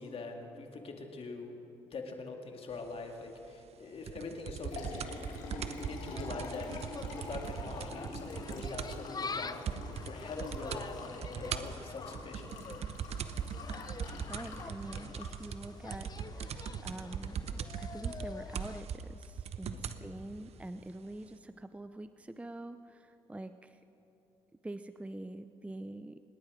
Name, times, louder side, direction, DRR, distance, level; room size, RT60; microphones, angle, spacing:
voice 1, 0.0-1.5 1.9-5.2 5.6-6.7 7.1-12.6 19.7-20.1, left 3 dB, 50° left, 3 dB, 2.3 m, -43 dB
sound 1, 4.1-9.1 9.3-9.4 9.7-10.1 10.4-10.9 11.2-20.0 20.8-20.9, right 7 dB, 60° right, 0.8 m, -40 dB
Liquid, 4.3-16.3, left 3 dB, 80° left, 2.3 m, -47 dB
Insect, 5.0-18.8, left 4 dB, 30° left, 0.8 m, -47 dB
voice 2, 14.3-23.8 24.6-26.2, right 1 dB, 10° right, 11 dB, 0.5 m, -45 dB
26.0 x 10.5 x 5.0 m, 3.0 s
supercardioid pair, 65°, 12 cm